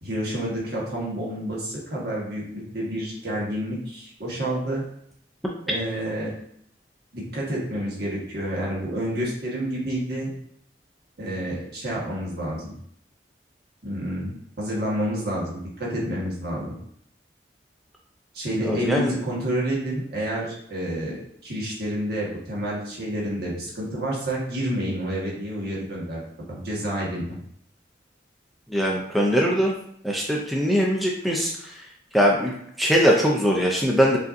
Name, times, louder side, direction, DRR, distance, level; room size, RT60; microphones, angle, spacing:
voice 1, 0.0-4.8 5.6-6.4 7.1-10.3 11.2-12.7 13.8-16.8 18.3-26.2 26.5-27.4, equal, 60° right, -5 dB, 1.4 m, -29 dB
voice 2, 18.6-19.1 28.7-29.7 30.0-31.5 32.1-34.2, equal, ahead, -3 dB, 0.4 m, -21 dB
5.5 x 2.7 x 2.6 m, 0.68 s
head